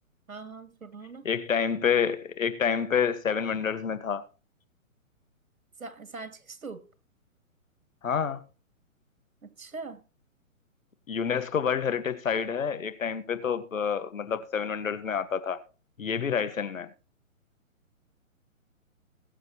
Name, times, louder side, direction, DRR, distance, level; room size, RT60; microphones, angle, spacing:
voice 1, 0.3-1.3 5.8-6.8 9.4-10.0, right 4 dB, 80° right, 2.4 m, -42 dB
voice 2, 1.2-4.2 8.0-8.4 11.1-15.6 16.0-16.9, left 7 dB, 70° left, 1.7 m, -28 dB
21.0 x 7.9 x 3.0 m
figure-of-eight pair, 135°, 41 cm